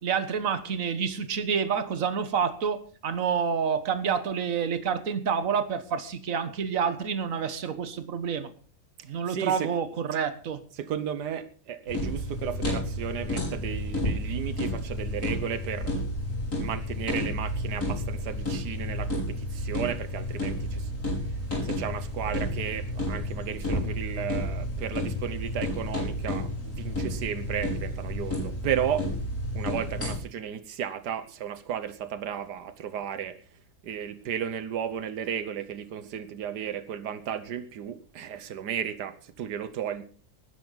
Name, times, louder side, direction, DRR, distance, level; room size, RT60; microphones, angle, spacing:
voice 1, 0.0-8.5 9.1-10.6, right 6 dB, 55° right, 10 dB, 1.7 m, -28 dB
voice 2, 9.3-9.7 10.8-15.9 16.5-20.9 21.6-29.1 29.5-33.4 33.8-40.0, right 9 dB, 85° right, 12 dB, 1.5 m, -34 dB
sound 1, 11.9-30.2, left 1 dB, 65° left, 5.9 m, -31 dB
18.5 x 10.5 x 4.0 m, 0.41 s
omnidirectional pair, 1.7 m